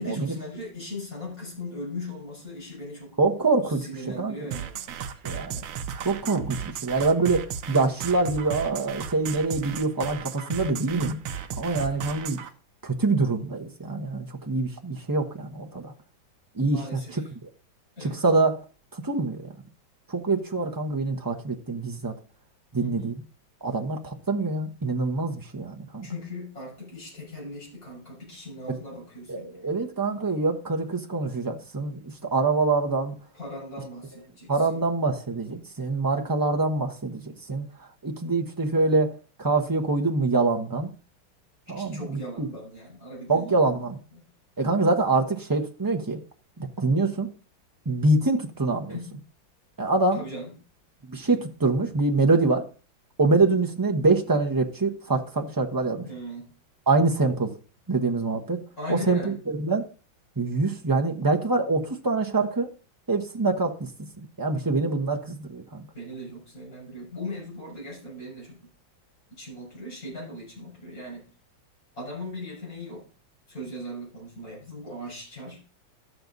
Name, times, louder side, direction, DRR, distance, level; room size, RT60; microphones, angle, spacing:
voice 1, 0.0-3.1 3.8-4.9 16.6-17.3 18.0-18.2 22.8-23.2 26.0-29.7 33.3-34.9 41.8-43.8 44.1-44.2 48.9-49.1 50.1-50.6 51.8-51.9 56.0-56.5 58.8-59.4 65.9-68.7 69.4-71.2 72.0-73.0 73.5-75.6, left 1 dB, 45° left, -3 dB, 7.1 m, -38 dB
voice 2, 3.2-3.9 4.2-4.4 5.2-5.6 6.0-11.2 11.6-12.4 12.8-15.9 16.5-17.2 18.0-18.6 18.9-19.5 20.1-22.1 22.7-23.2 23.6-26.1 29.3-33.2 34.5-37.7 38.0-39.1 39.4-40.9 41.7-42.5 43.3-44.0 44.6-46.2 46.6-47.3 47.8-49.0 49.8-50.2 51.1-52.6 53.2-56.1 56.9-57.5 57.9-58.6 58.9-59.9 60.4-62.7 63.1-63.9 64.4-65.9, right 3 dB, 15° right, 1 dB, 0.7 m, -25 dB
sound 1, 4.5-12.5, right 8 dB, 75° right, 1.5 m, -35 dB
12.0 x 7.9 x 4.0 m, 0.37 s
omnidirectional pair, 2.2 m